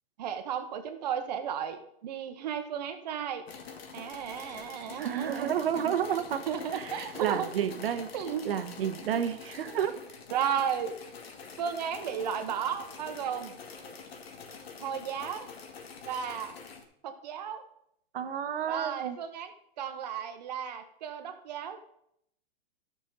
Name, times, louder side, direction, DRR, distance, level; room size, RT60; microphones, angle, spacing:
voice 1, 0.2-3.5 3.9-6.0 6.5-7.5 8.1-8.5 9.7-9.8 10.3-11.0 11.6-13.6 14.8-15.5 16.0-16.5 17.0-17.6 18.7-19.5 19.8-21.8, right 8 dB, 45° right, 7 dB, 1.1 m, -34 dB
sound 1, 3.5-16.8, left 5 dB, 80° left, 1.8 m, -46 dB
voice 2, 5.0-6.4 6.7-8.1 8.4-9.9 18.1-19.2, right 9 dB, 70° right, 10 dB, 1.1 m, -31 dB
13.0 x 6.3 x 4.0 m, 0.73 s
supercardioid pair, 175°, 30 cm